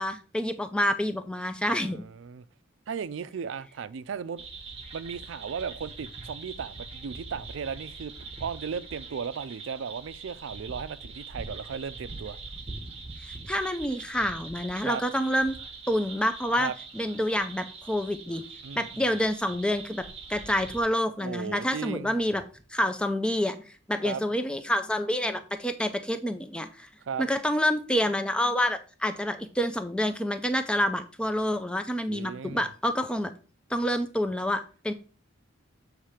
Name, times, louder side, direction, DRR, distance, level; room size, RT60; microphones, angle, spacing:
voice 1, 0.0-2.0 13.2-15.5 15.9-18.4 18.8-22.4 22.7-26.9 27.2-33.3 33.7-34.9, equal, 5° left, 0.4 m, -28 dB
voice 2, 1.7-2.4 2.9-4.5 4.9-8.1 8.4-12.4 14.8-15.0 16.6-16.7 18.6-19.1 21.2-22.2 24.0-24.2 27.0-27.3 32.1-32.7, right 6 dB, 75° right, 0.4 m, -36 dB
sound 1, 4.4-20.8, right 4 dB, 30° right, 1.0 m, -43 dB
7.4 x 3.2 x 4.9 m
head